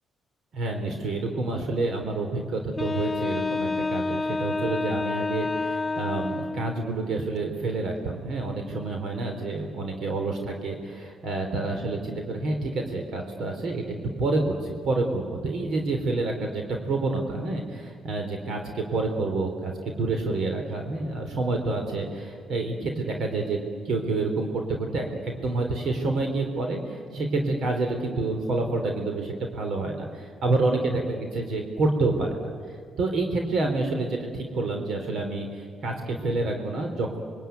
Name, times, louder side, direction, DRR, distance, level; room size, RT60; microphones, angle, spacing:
voice 1, 0.5-13.8 14.2-23.6 23.8-32.5 33.0-37.2, right 2 dB, 70° right, 3 dB, 3.5 m, -28 dB
Wind instrument woodwind instrument, 2.8-6.9, left 3 dB, 20° left, 2.3 m, -28 dB
27.0 x 22.5 x 9.4 m, 2.1 s
cardioid pair, 90°, 0 cm